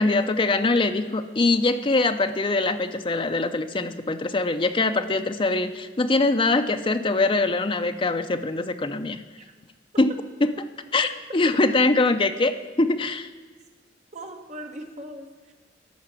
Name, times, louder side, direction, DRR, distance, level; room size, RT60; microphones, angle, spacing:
voice 1, 0.0-9.2 10.0-10.1 10.6-10.7 10.9-12.5 12.8-13.3, left 3 dB, 25° left, 8 dB, 0.5 m, -23 dB
voice 2, 14.1-15.5, right 1 dB, 40° right, 3 dB, 1.3 m, -39 dB
12.5 x 5.7 x 7.4 m, 1.4 s
head